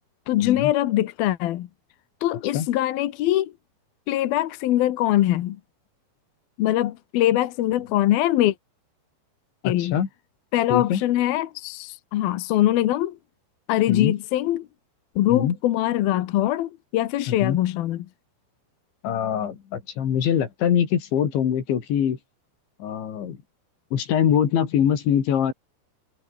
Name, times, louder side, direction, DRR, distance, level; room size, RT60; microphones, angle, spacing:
voice 1, 0.3-1.7 2.2-3.5 4.1-5.6 6.6-8.5 9.6-10.0 10.5-13.2 13.7-14.7 15.2-18.1, left 14 dB, 70° left, 2.7 m, -22 dB
voice 2, 9.6-10.1 10.7-11.0 13.9-14.1 15.3-15.6 17.3-17.6 19.0-22.2 22.8-23.4 23.9-25.5, left 9 dB, 90° left, 5.5 m, -23 dB
omnidirectional pair, 5.1 m